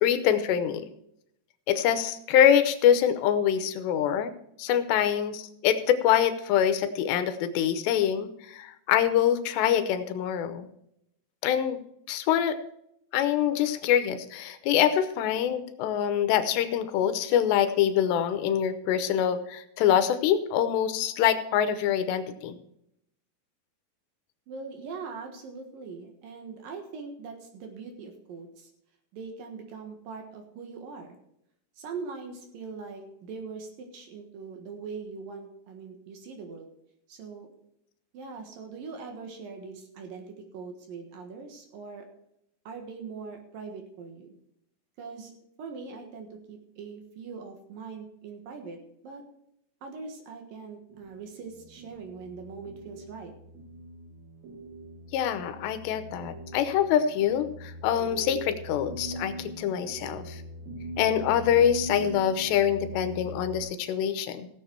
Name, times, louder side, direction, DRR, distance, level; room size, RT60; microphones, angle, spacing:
voice 1, 0.0-0.9 1.7-4.3 4.6-10.7 11.4-11.8 12.1-12.6 13.1-22.6 55.1-60.4 61.0-64.5, left 9 dB, 85° left, 10 dB, 3.0 m, -25 dB
voice 2, 24.5-28.7 29.1-31.2 31.8-36.7 37.1-37.5 38.1-42.1 42.6-44.4 45.0-45.3 45.6-48.8 49.0-49.2 49.8-53.3, right 4 dB, 65° right, 4 dB, 2.8 m, -41 dB
sound 1, 50.9-63.6, right 1 dB, 85° right, 4.2 m, -41 dB
17.0 x 7.3 x 4.5 m, 0.76 s
omnidirectional pair, 4.9 m